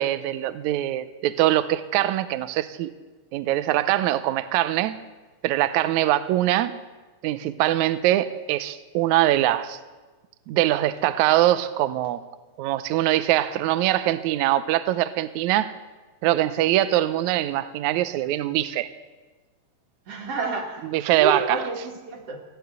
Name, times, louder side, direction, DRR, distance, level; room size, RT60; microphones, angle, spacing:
voice 1, 0.0-2.9 3.3-5.0 5.4-6.7 7.2-9.8 10.5-12.2 12.6-15.7 16.2-18.9 20.9-21.4, right 14 dB, 80° right, 13 dB, 1.8 m, -23 dB
voice 2, 20.1-22.4, right 4 dB, 50° right, 2 dB, 2.5 m, -29 dB
16.5 x 9.9 x 8.1 m, 1.2 s
omnidirectional pair, 3.8 m